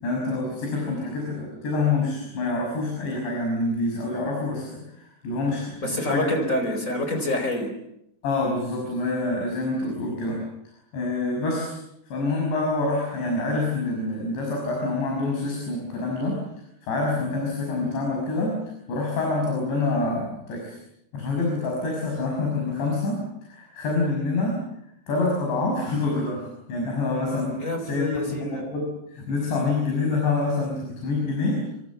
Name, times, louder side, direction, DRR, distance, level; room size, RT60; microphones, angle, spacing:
voice 1, 0.0-6.3 8.2-10.4 10.9-11.8 12.1-16.4 16.9-18.6 18.9-20.8 21.1-24.6 25.1-28.1 28.4-31.7, left 3 dB, 75° left, 0 dB, 8.2 m, -26 dB
voice 2, 5.8-7.7 27.6-28.6, left 1 dB, 20° left, 7 dB, 4.2 m, -27 dB
30.0 x 24.0 x 7.3 m, 0.77 s
omnidirectional pair, 5.1 m